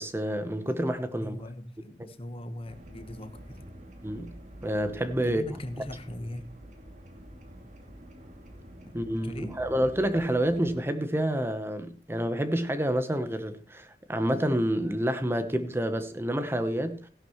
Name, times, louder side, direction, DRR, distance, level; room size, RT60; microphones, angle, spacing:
voice 1, 0.0-1.4 4.0-4.3 4.6-5.4 8.9-17.1, right 1 dB, 15° right, 0.9 m, -28 dB
voice 2, 1.2-3.6 5.2-6.5 8.8-9.6, left 1 dB, 30° left, 1.2 m, -40 dB
sound 1, 2.6-10.8, equal, 45° right, 2.5 m, -47 dB
16.5 x 11.0 x 3.1 m
head